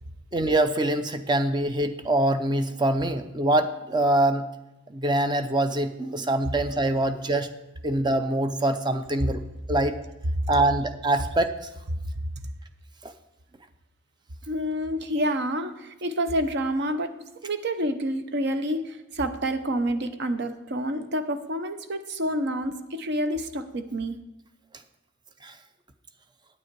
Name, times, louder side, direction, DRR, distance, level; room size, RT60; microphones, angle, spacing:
voice 1, 0.3-4.5 4.9-7.5 7.8-9.4 9.7-10.0 10.5-11.5 13.0-13.1 25.4-25.5, right 1 dB, 20° right, 8 dB, 0.6 m, -24 dB
voice 2, 14.5-15.7 16.0-17.1 17.4-18.8 19.2-24.2, equal, 55° right, 9 dB, 0.7 m, -28 dB
9.2 x 8.6 x 4.6 m, 1.0 s
head